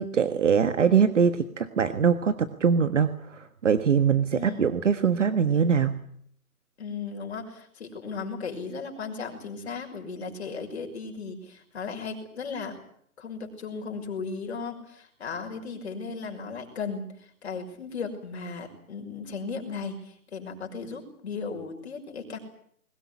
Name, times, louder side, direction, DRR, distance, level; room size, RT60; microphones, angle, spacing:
voice 1, 0.0-6.0, right 6 dB, 55° right, 11 dB, 1.6 m, -23 dB
voice 2, 4.3-4.6 6.8-12.8 13.2-22.4, left 5 dB, 45° left, 3 dB, 6.0 m, -36 dB
21.5 x 19.5 x 9.7 m, 0.66 s
hypercardioid pair, 170°, 44 cm